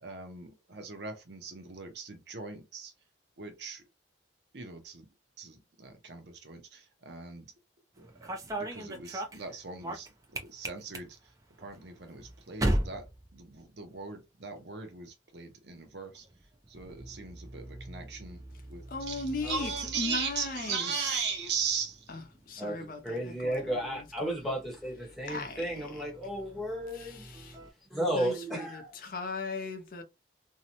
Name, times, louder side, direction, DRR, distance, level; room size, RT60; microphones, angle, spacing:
voice 1, 0.0-2.9 3.4-3.8 4.5-5.1 5.4-7.5 8.0-11.2 11.6-13.1 13.3-16.3 16.7-18.4 18.7-22.1, right 5 dB, 65° right, 0.7 m, -38 dB
sound 1, 7.9-14.1 14.4-15.0 16.0-27.7, right 1 dB, 20° right, 0.4 m, -40 dB
voice 2, 18.9-19.7 20.0-21.2 22.1-22.2 22.5-24.5 25.3-26.1 26.9-27.6 28.1-30.0, left 3 dB, 50° left, 0.5 m, -38 dB
voice 3, 23.0-27.3 27.9-28.9, right 1 dB, ahead, 0.9 m, -33 dB
2.6 x 2.1 x 2.8 m
head